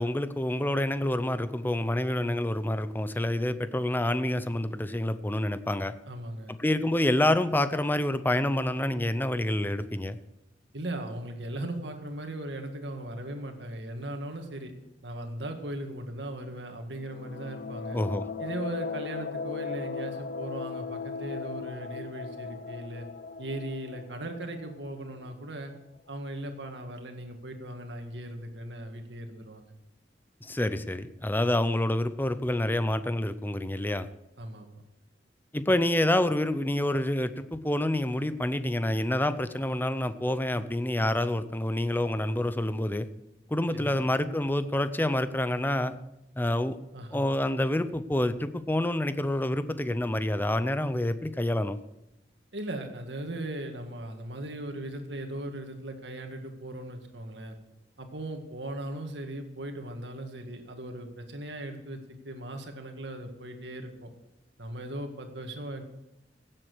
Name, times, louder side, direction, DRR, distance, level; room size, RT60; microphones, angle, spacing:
voice 1, 0.0-5.9 6.6-10.2 17.9-18.3 30.4-34.1 35.5-43.1 43.5-45.9 46.4-46.8 47.1-51.8, left 1 dB, 10° left, 12 dB, 0.6 m, -27 dB
voice 2, 6.1-6.5 10.7-14.7 15.0-18.0 18.4-23.1 23.4-25.7 26.1-29.7 34.4-34.8 43.7-44.0 46.9-47.3 52.5-57.6 58.0-64.1 64.6-65.8, right 1 dB, 75° right, 5 dB, 1.9 m, -38 dB
sound 1, 17.0-25.6, left 5 dB, 55° left, 0.6 m, -38 dB
16.0 x 7.7 x 6.2 m, 0.88 s
head